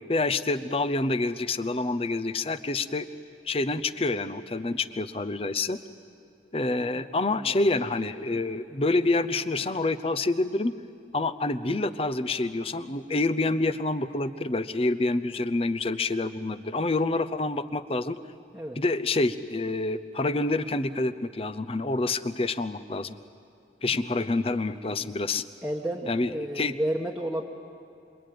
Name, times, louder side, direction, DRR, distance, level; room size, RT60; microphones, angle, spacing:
voice 1, 0.1-3.1 3.4-5.8 6.5-10.7 11.1-18.2 18.8-23.1 23.8-25.4 26.1-26.7, left 2 dB, 35° left, 13 dB, 0.8 m, -27 dB
voice 2, 6.9-7.5 18.5-18.8 23.9-24.1 25.6-27.5, right 1 dB, ahead, -4 dB, 1.3 m, -32 dB
26.5 x 23.0 x 9.4 m, 2.5 s
head